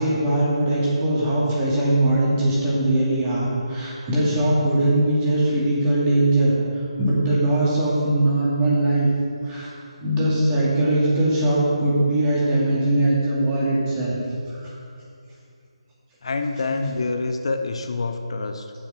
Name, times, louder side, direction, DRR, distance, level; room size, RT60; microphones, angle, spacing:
voice 1, 0.0-9.1 9.4-9.7 10.0-14.2 14.5-14.8 16.7-16.8, right 1 dB, 20° right, -7 dB, 2.4 m, -21 dB
voice 2, 16.2-18.7, left 3 dB, 60° left, 6 dB, 0.7 m, -26 dB
7.3 x 7.1 x 5.9 m, 2.4 s
figure-of-eight pair, 155°, 3 cm